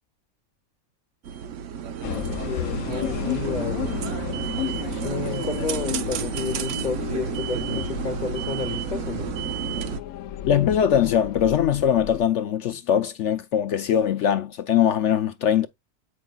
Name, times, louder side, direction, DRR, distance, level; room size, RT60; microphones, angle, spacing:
sound 1, 1.2-10.0, right 8 dB, 65° right, 1.0 m, -31 dB
sound 2, 2.0-12.3, left 11 dB, 85° left, 1.1 m, -33 dB
voice 1, 2.5-4.0 5.0-9.3, left 5 dB, 40° left, 0.9 m, -31 dB
voice 2, 10.5-15.7, left 9 dB, 65° left, 0.8 m, -21 dB
8.5 x 5.3 x 2.2 m
omnidirectional pair, 1.5 m